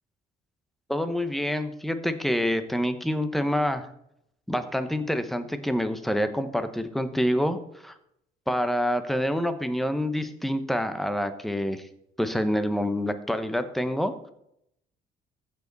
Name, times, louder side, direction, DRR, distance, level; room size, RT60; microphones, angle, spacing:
voice 1, 0.9-3.9 4.5-7.6 7.8-7.9 8.5-11.8 12.2-14.3, equal, ahead, 9 dB, 0.9 m, -27 dB
15.0 x 5.2 x 4.0 m, 0.75 s
cardioid pair, 110°, 17 cm